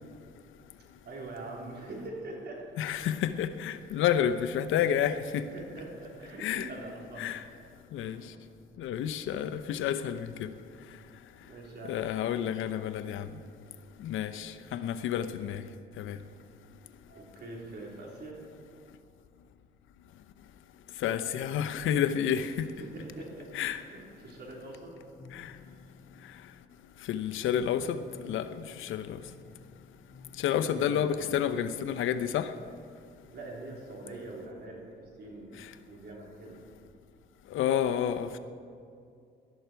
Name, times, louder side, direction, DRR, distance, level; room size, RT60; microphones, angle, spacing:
voice 1, 1.0-2.6 4.9-5.1 5.4-7.3 8.0-8.4 11.4-12.6 17.1-18.4 22.8-24.9 30.6-31.4 33.3-34.9 35.2-36.6, right 2 dB, 55° right, -2 dB, 3.9 m, -44 dB
voice 2, 2.8-5.4 6.4-6.7 7.2-7.4 7.9-8.2 8.8-10.5 11.9-13.3 14.0-15.6 16.0-16.2 21.0-22.7 23.5-23.8 25.3-25.5 27.1-28.0 28.2-29.2 30.4-32.5 37.5-38.4, left 9 dB, 80° left, 10 dB, 0.8 m, -30 dB
sound 1, 24.9-26.7 27.5-28.5 29.0-31.9, left 4 dB, 15° left, 2.3 m, -53 dB
18.5 x 12.5 x 4.6 m, 2.4 s
cardioid pair, 90°, 20 cm